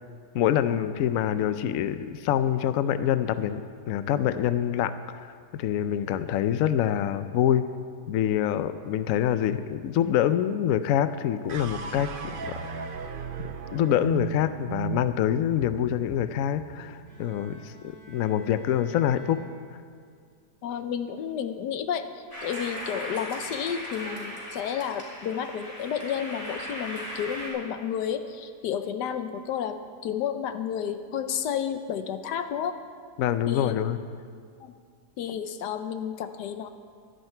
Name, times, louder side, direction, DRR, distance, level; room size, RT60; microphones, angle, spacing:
voice 1, 0.3-3.6 3.9-7.7 8.1-12.1 12.5-12.6 13.4-19.4 33.2-34.0, left 10 dB, 70° left, 12 dB, 0.9 m, -26 dB
sound 1, 11.5-17.9, right 7 dB, 70° right, 0.5 m, -37 dB
Bowed string instrument, 17.1-20.2, right 1 dB, 10° right, 4.2 m, -52 dB
voice 2, 20.6-29.8 30.0-32.8 33.5-33.7 34.6-34.7 35.2-36.7, left 8 dB, 90° left, 9 dB, 1.3 m, -31 dB
sound 2, 22.3-27.5, equal, 20° left, 3.3 m, -38 dB
16.5 x 12.0 x 4.5 m, 2.1 s
omnidirectional pair, 1.8 m